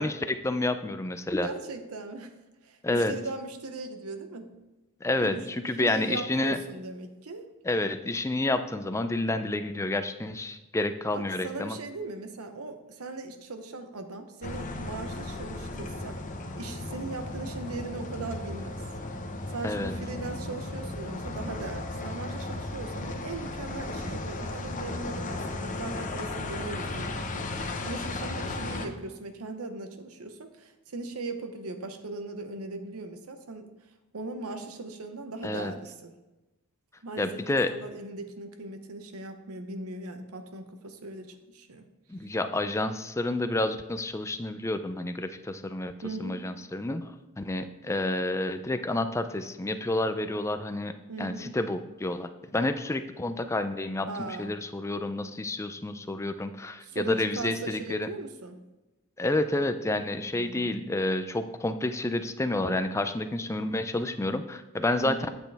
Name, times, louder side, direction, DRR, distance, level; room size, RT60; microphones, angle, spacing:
voice 1, 0.0-1.5 2.8-3.1 5.0-6.6 7.6-11.8 19.6-19.9 35.4-35.7 37.2-37.7 42.1-45.9 46.2-50.9 51.2-58.1 59.2-65.3, left 2 dB, 15° left, 9 dB, 0.4 m, -29 dB
voice 2, 1.4-2.4 2.6-4.5 5.2-7.5 11.1-16.2 16.6-18.8 19.5-33.7 34.1-36.1 37.0-41.8 42.2-42.3 46.0-46.4 51.1-51.6 54.1-54.5 56.8-58.6 60.3-60.8 65.0-65.3, right 3 dB, 75° right, 8 dB, 0.9 m, -39 dB
sound 1, 14.4-28.9, left 2 dB, 35° left, 0.8 m, -35 dB
8.9 x 7.9 x 3.4 m, 1.1 s
head